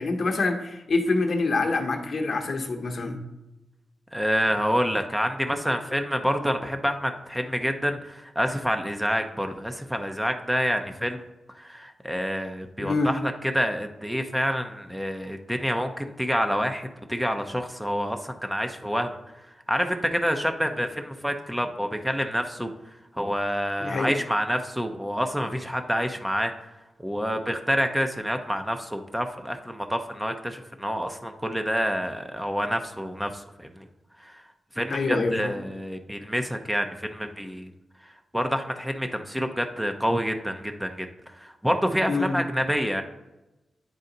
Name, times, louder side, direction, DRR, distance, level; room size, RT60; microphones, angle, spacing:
voice 1, 0.0-3.2 12.8-13.1 23.8-24.2 34.9-35.5 42.1-42.4, left 3 dB, 60° left, 5 dB, 0.8 m, -26 dB
voice 2, 4.1-11.2 11.5-19.2 19.7-22.7 23.1-26.5 27.0-33.8 34.2-34.4 34.8-37.7 38.3-43.0, equal, 5° right, 6 dB, 0.6 m, -27 dB
8.9 x 4.0 x 3.9 m, 1.0 s
cardioid pair, 70°, 0 cm